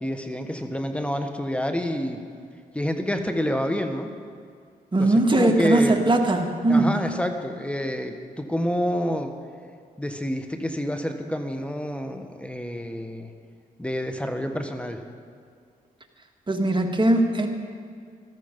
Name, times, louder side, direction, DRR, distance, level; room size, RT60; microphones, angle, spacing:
voice 1, 0.0-2.2 2.7-4.1 5.0-6.0 6.7-9.3 10.0-13.3 13.8-15.0, equal, 10° left, 6 dB, 1.3 m, -28 dB
voice 2, 4.9-7.0 16.5-17.5, right 2 dB, 30° right, 3 dB, 1.8 m, -20 dB
14.5 x 13.5 x 5.3 m, 2.1 s
cardioid pair, 65°, 15 cm